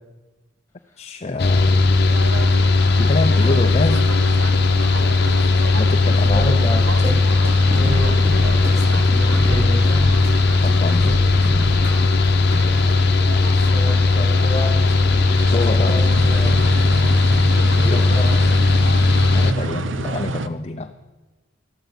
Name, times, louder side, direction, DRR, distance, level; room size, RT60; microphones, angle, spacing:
voice 1, 1.0-1.7 3.0-4.2 5.8-6.5 7.8-8.0 10.6-11.2 15.5-16.0 17.8-18.1 19.3-20.9, left 2 dB, 30° left, 7 dB, 0.5 m, -26 dB
Mechanical fan, 1.4-19.5, left 3 dB, 55° left, 0.8 m, -17 dB
sound 1, 2.1-20.5, right 3 dB, 70° right, 0.7 m, -31 dB
voice 2, 6.2-7.1 7.7-10.1 13.5-15.2 15.4-16.6 17.8-18.7, equal, 15° left, 3 dB, 2.5 m, -30 dB
sound 2, 6.2-12.6, equal, 10° right, 2.4 m, -29 dB
13.5 x 12.5 x 5.9 m, 1.2 s
head